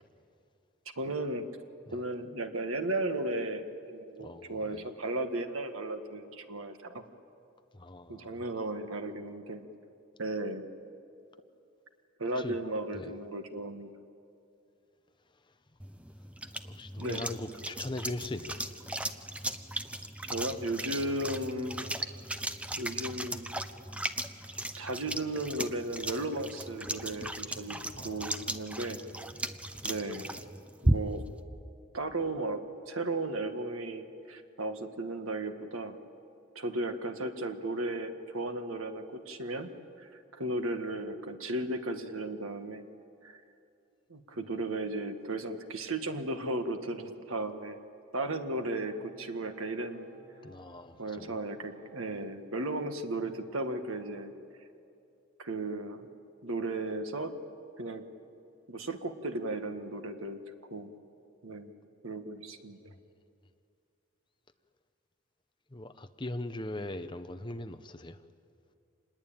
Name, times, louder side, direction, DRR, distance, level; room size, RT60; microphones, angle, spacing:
voice 1, 1.0-1.5 1.9-7.0 8.1-9.6 10.2-10.6 12.2-13.9 17.0-17.2 20.3-21.9 22.8-23.5 24.8-27.8 28.0-29.0 29.8-30.3 30.8-31.3 31.9-36.0 36.6-39.7 40.0-42.9 43.2-43.4 44.1-47.8 48.1-50.1 51.0-54.3 55.4-56.1 56.4-57.3 57.8-58.0 58.7-60.4 60.7-60.9 61.4-61.7 62.0-62.8, right 2 dB, 80° right, 1.8 m, -35 dB
voice 2, 4.2-4.8 7.7-8.4 12.4-12.6 12.9-13.1 16.6-19.0 27.6-28.6 50.4-51.3 65.7-68.2, left 1 dB, 20° left, 0.8 m, -41 dB
sound 1, 15.8-31.3, right 1 dB, 5° right, 0.6 m, -36 dB
Organ, 48.5-52.3 52.7-54.0, right 1 dB, 50° right, 6.5 m, -60 dB
26.5 x 20.5 x 8.9 m
head